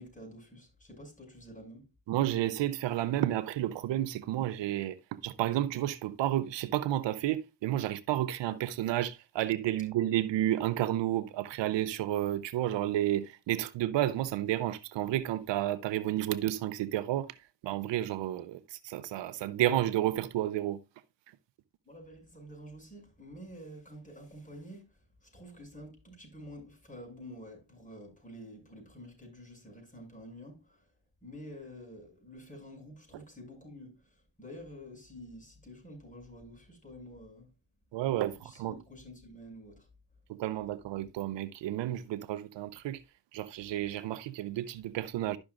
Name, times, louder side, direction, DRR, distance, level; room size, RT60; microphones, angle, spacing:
voice 1, 0.0-1.9 21.8-30.9 31.2-37.5 38.3-39.9, equal, 20° left, 6.1 m, -49 dB
voice 2, 2.1-5.0 5.2-17.3 17.6-20.8 37.9-38.8 40.3-43.0 43.3-45.4, right 13 dB, 80° right, 0.6 m, -31 dB
12.0 x 6.2 x 2.4 m
supercardioid pair, 55°, 43 cm